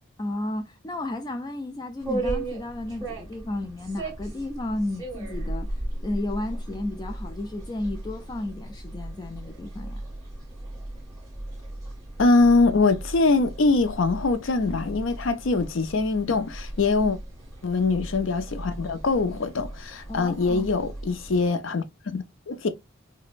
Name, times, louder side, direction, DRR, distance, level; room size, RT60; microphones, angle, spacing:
voice 1, 0.2-10.0 20.1-20.7, left 1 dB, 20° left, 0.3 m, -33 dB
sound 1, 2.0-21.5, right 1 dB, 15° right, 1.6 m, -36 dB
voice 2, 12.2-17.2 17.6-22.7, left 3 dB, 70° left, 0.5 m, -23 dB
5.0 x 2.1 x 2.4 m
head